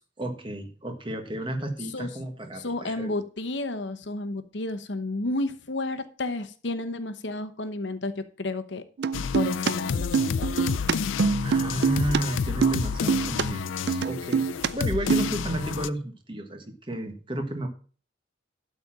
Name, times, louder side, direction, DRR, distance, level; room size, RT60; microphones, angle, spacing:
voice 1, 0.2-3.2 11.4-14.4 14.7-17.7, right 1 dB, 25° right, 1.5 m, -32 dB
voice 2, 2.5-8.8 9.3-10.5, left 2 dB, 70° left, 0.9 m, -31 dB
sound 1, 9.0-9.7 10.0-12.2 12.5-13.4 13.9-14.7 15.0-15.3, right 5 dB, 55° right, 0.4 m, -24 dB
sound 2, 9.1-15.9, left 6 dB, 85° left, 0.4 m, -30 dB
12.0 x 4.3 x 7.4 m
head